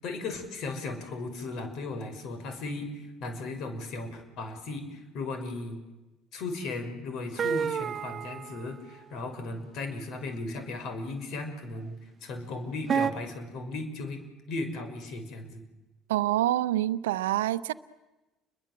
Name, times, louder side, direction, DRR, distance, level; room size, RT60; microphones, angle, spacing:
voice 1, 0.0-5.8 6.3-11.9 12.2-14.2 14.5-15.6, left 3 dB, 60° left, 6.1 m, -36 dB
sound 1, 7.4-8.6 10.6-10.7 12.9-13.1, right 7 dB, 40° right, 0.9 m, -29 dB
voice 2, 16.1-17.7, right 14 dB, 75° right, 0.8 m, -26 dB
30.0 x 22.0 x 7.7 m
figure-of-eight pair, 55°, 0 cm